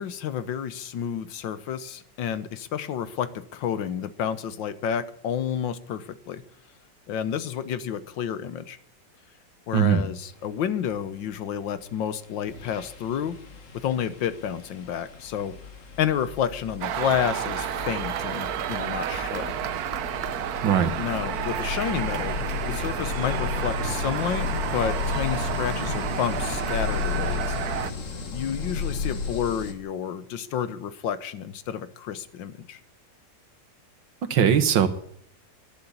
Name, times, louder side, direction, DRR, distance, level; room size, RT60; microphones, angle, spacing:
voice 1, 0.0-6.4 7.1-8.8 9.7-13.4 13.7-15.5 16.0-19.5 21.0-27.6 28.3-32.8, left 8 dB, 80° left, 13 dB, 1.7 m, -30 dB
sound 1, 11.9-12.1 12.5-29.7, left 5 dB, 45° left, 1.8 m, -33 dB
sound 2, 16.8-27.9, right 10 dB, 65° right, 1.1 m, -31 dB
voice 2, 34.3-34.9, right 8 dB, 80° right, 11 dB, 1.9 m, -19 dB
12.0 x 11.0 x 8.4 m, 0.70 s
omnidirectional pair, 2.0 m